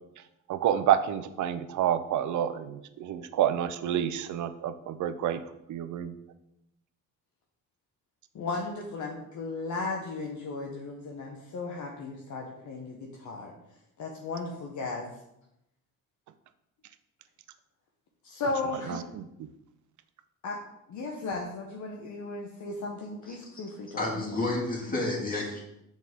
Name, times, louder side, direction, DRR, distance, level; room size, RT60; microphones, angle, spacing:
voice 1, 0.5-5.4 5.7-6.2 18.9-19.2, right 10 dB, 60° right, 11 dB, 0.6 m, -28 dB
voice 2, 8.3-13.5 14.0-15.1 18.2-19.0 20.4-20.6 20.9-24.4 24.9-25.0, left 3 dB, 60° left, 0 dB, 0.9 m, -35 dB
voice 3, 24.0-25.6, left 2 dB, 25° left, -3 dB, 2.2 m, -30 dB
6.3 x 4.2 x 3.5 m, 0.83 s
cardioid pair, 85°, 34 cm